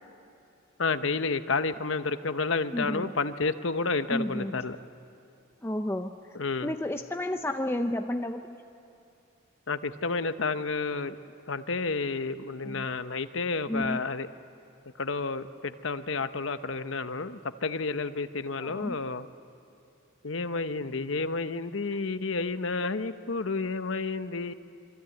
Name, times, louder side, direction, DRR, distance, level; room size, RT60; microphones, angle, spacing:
voice 1, 0.8-4.8 6.3-6.7 9.7-11.2 11.5-14.3 15.0-19.3 20.2-24.5, left 4 dB, 65° left, 11 dB, 0.9 m, -30 dB
voice 2, 2.7-3.1 4.1-4.5 5.6-6.1 6.6-8.6 12.6-12.9 13.7-14.0 18.6-19.0, left 1 dB, 10° left, 6 dB, 0.6 m, -31 dB
27.0 x 22.5 x 9.1 m, 2.6 s
head